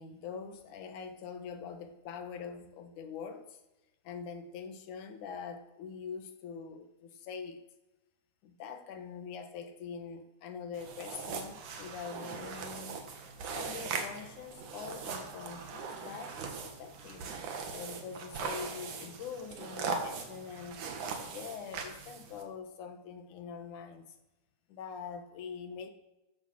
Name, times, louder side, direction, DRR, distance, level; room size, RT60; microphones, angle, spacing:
voice 1, 0.0-3.6 4.0-7.6 8.4-13.0 13.5-17.3 17.7-20.9 21.2-24.0 24.7-25.9, left 6 dB, 90° left, 7 dB, 2.8 m, -44 dB
sound 1, 10.7-22.4, right 5 dB, 85° right, 3.2 m, -40 dB
14.5 x 10.0 x 6.2 m, 0.97 s
omnidirectional pair, 3.4 m